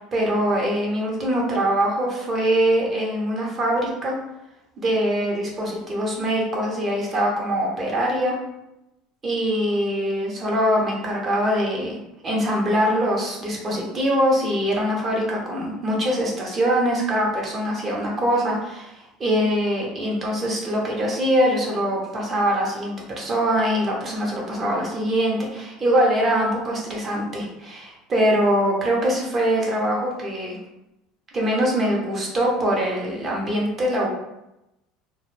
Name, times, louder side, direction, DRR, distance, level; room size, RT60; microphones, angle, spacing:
voice 1, 0.1-4.2 4.8-8.4 9.2-30.6 31.3-34.1, equal, 35° right, -2 dB, 0.9 m, -23 dB
2.3 x 2.0 x 3.2 m, 0.89 s
hypercardioid pair, 80°, 0 cm